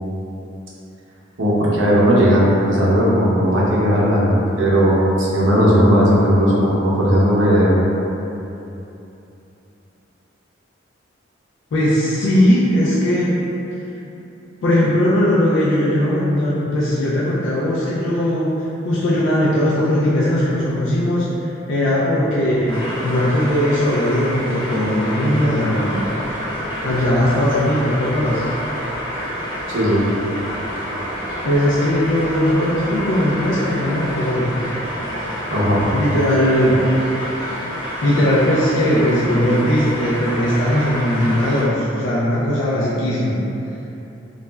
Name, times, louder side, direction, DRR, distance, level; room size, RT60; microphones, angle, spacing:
voice 1, 1.4-7.7 29.7-30.0 35.5-35.9, equal, 75° right, -6 dB, 0.6 m, -16 dB
voice 2, 11.7-13.4 14.6-21.3 21.7-26.0 26.8-28.4 31.4-34.6 35.9-36.8 37.8-43.4, left 1 dB, 75° left, -8 dB, 0.4 m, -19 dB
sound 1, 22.7-41.6, equal, 25° left, 0.6 m, -28 dB
2.4 x 2.1 x 3.2 m, 2.9 s
head